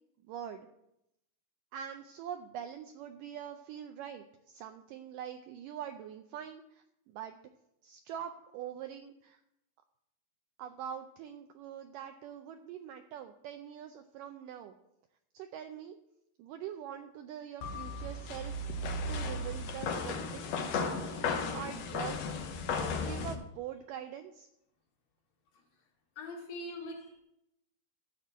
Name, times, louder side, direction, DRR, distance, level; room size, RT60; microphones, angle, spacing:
voice 1, 0.3-0.7 1.7-7.4 7.8-9.4 10.6-14.7 15.3-16.0 16.4-18.7 19.1-22.2 23.0-24.5, right 9 dB, 80° right, 7 dB, 1.9 m, -44 dB
sound 1, 17.6-23.4, left 3 dB, 90° left, 1.4 m, -35 dB
voice 2, 26.2-27.2, left 1 dB, 70° left, 0 dB, 3.5 m, -42 dB
13.0 x 4.4 x 8.1 m, 0.82 s
omnidirectional pair, 4.4 m